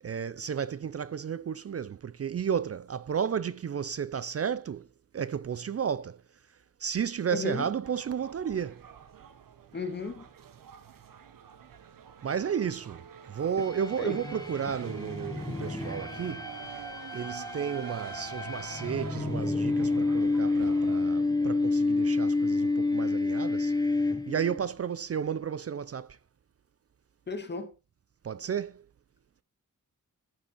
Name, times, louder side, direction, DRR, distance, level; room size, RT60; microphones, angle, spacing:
voice 1, 0.0-4.9 5.1-6.2 6.8-8.8 12.2-16.5 17.1-26.2 28.2-28.9, right 7 dB, 45° right, 0.5 m, -33 dB
voice 2, 7.3-7.7 9.7-10.3 14.0-14.2 27.3-27.7, left 3 dB, 30° left, 2.0 m, -34 dB
sound 1, 7.8-21.0, right 6 dB, 90° right, 1.4 m, -45 dB
sound 2, 13.6-24.6, left 3 dB, 10° left, 0.9 m, -29 dB
14.5 x 7.1 x 4.5 m
wide cardioid pair, 170°, 33 cm